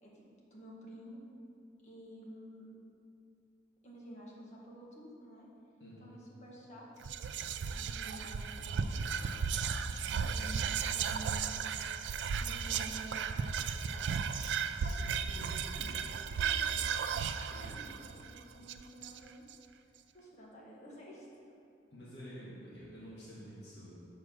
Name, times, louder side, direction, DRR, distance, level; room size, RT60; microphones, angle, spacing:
voice 1, 0.5-1.2 1.8-2.7 3.8-5.5 6.0-9.8 10.2-11.5 12.3-13.4 13.9-14.6 14.8-17.2 17.5-19.4 20.1-21.5, equal, 40° left, -4 dB, 1.4 m, -52 dB
Whispering, 7.0-19.5, right 6 dB, 85° right, 0.3 m, -35 dB
voice 2, 17.5-18.0 21.9-23.9, equal, 75° left, -8 dB, 1.6 m, -50 dB
6.2 x 4.8 x 6.1 m, 2.5 s
head